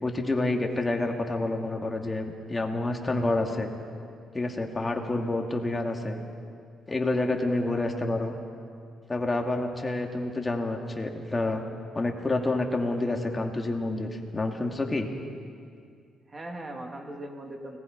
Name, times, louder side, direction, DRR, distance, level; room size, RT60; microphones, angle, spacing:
voice 1, 0.0-3.7 4.3-6.2 6.9-8.3 9.1-11.6 11.9-15.1, left 2 dB, 25° left, 2 dB, 2.5 m, -28 dB
voice 2, 7.6-8.4 16.3-17.8, right 1 dB, 25° right, 3 dB, 2.9 m, -40 dB
29.5 x 19.5 x 5.4 m, 2.2 s
cardioid pair, 90°, 0 cm